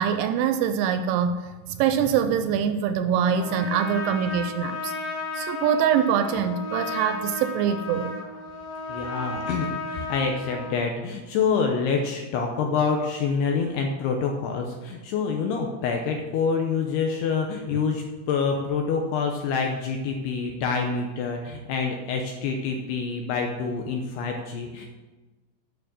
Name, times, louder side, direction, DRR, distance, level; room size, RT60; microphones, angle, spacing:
voice 1, 0.0-1.5 1.8-4.9 5.4-8.2, right 8 dB, 85° right, 9 dB, 2.8 m, -24 dB
Trumpet, 3.2-10.8, left 3 dB, 50° left, 1.7 m, -33 dB
voice 2, 8.9-24.9, left 5 dB, 80° left, 2 dB, 2.4 m, -27 dB
9.3 x 6.4 x 7.4 m, 1.2 s
omnidirectional pair, 5.6 m